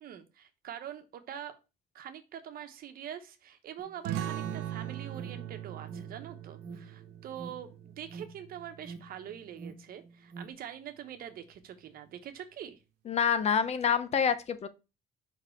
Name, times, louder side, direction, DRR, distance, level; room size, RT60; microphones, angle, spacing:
voice 1, 0.0-1.6 1.9-12.8, right 9 dB, 60° right, 1.1 m, -44 dB
Alarm, 3.8-10.5, right 4 dB, 35° right, 1.3 m, -48 dB
sound 1, 4.0-9.2, right 11 dB, 85° right, 0.6 m, -40 dB
voice 2, 13.1-14.7, left 7 dB, 40° left, 0.7 m, -27 dB
5.3 x 5.3 x 4.5 m
cardioid pair, 110°, 17 cm